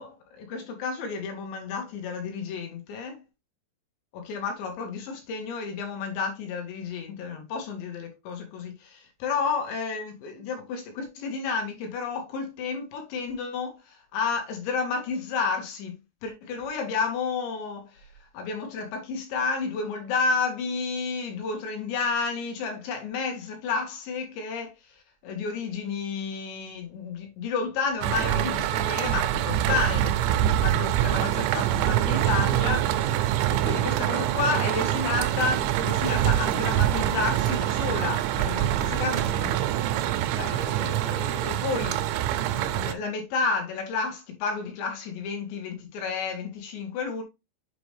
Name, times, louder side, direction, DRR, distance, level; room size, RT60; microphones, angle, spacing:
voice 1, 0.0-3.2 4.1-15.9 16.2-18.1 18.3-25.0 25.2-33.1 33.5-39.8 40.3-42.0 42.4-47.2, left 4 dB, 75° left, 3.8 m, -31 dB
sound 1, 28.0-42.9, right 12 dB, 80° right, 2.8 m, -25 dB
8.0 x 4.9 x 3.3 m
omnidirectional pair, 5.3 m